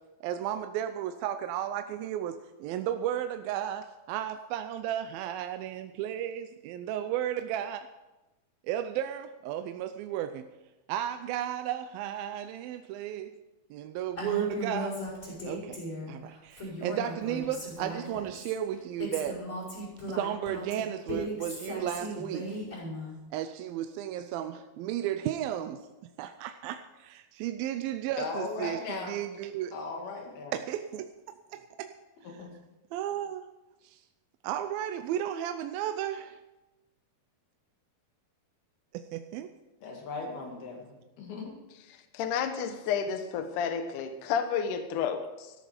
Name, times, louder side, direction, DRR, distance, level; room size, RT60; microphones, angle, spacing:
voice 1, 0.2-7.9 8.7-10.4 10.9-13.3 13.7-14.9 15.5-15.8 16.1-19.4 20.1-22.5 23.3-25.8 26.2-29.7 30.5-31.1 31.5-31.9 32.9-33.4 34.4-36.3 39.1-39.5, right 11 dB, 80° right, 9 dB, 2.3 m, -34 dB
Female speech woman speaking, 14.2-16.1 16.5-18.5 19.0-23.1, equal, 20° left, 5.9 m, -37 dB
voice 2, 28.2-29.1 29.7-30.6 32.2-32.5 39.8-41.6, left 3 dB, 80° left, 0 dB, 4.2 m, -38 dB
voice 3, 42.1-45.5, left 7 dB, 65° left, 7 dB, 2.4 m, -31 dB
14.0 x 13.5 x 5.1 m, 1.0 s
omnidirectional pair, 4.3 m